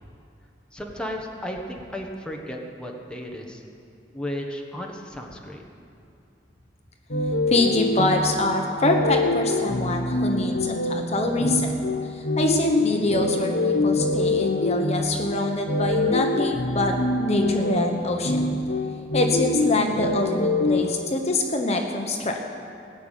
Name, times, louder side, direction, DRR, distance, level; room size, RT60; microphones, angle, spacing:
voice 1, 0.7-3.6 4.1-5.6, equal, 5° left, 0 dB, 1.3 m, -34 dB
sound 1, 7.1-20.8, left 2 dB, 85° left, 1.3 m, -25 dB
voice 2, 7.5-11.7 12.1-17.0 17.2-18.4 19.1-22.4, left 2 dB, 40° left, 3 dB, 1.1 m, -25 dB
19.0 x 7.0 x 9.1 m, 2.5 s
head